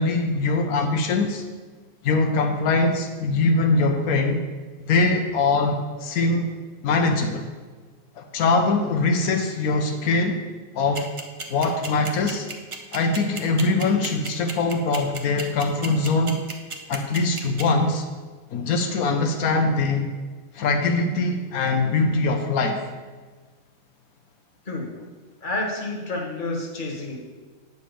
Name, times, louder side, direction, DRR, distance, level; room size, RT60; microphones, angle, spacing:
voice 1, 0.0-1.4 2.0-4.4 4.9-6.5 6.8-7.5 8.2-10.4 10.7-11.1 11.5-12.5 12.9-16.4 16.9-18.0 18.5-20.1 20.5-22.8, left 3 dB, 85° left, 4 dB, 1.2 m, -22 dB
sound 1, 10.9-17.6, right 4 dB, 35° right, 0.5 m, -32 dB
voice 2, 24.6-25.0 25.4-27.2, left 2 dB, 35° left, -1 dB, 1.5 m, -29 dB
8.8 x 4.1 x 6.7 m, 1.4 s
omnidirectional pair, 1.5 m